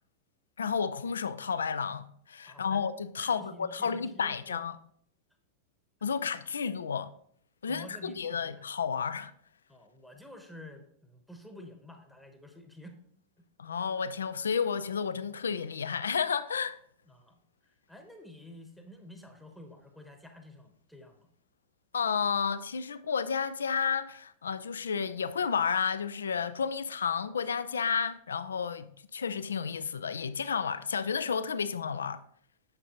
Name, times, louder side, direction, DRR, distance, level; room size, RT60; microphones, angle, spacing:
voice 1, 0.6-4.8 6.0-7.1 7.6-9.3 13.6-16.8 21.9-32.2, left 6 dB, 70° left, 0.4 m, -31 dB
voice 2, 2.5-2.8 3.2-4.6 7.7-8.6 9.7-13.0 17.1-17.4 17.9-21.3, left 1 dB, ahead, 1.0 m, -50 dB
8.7 x 6.8 x 2.9 m
figure-of-eight pair, 90°, 0 cm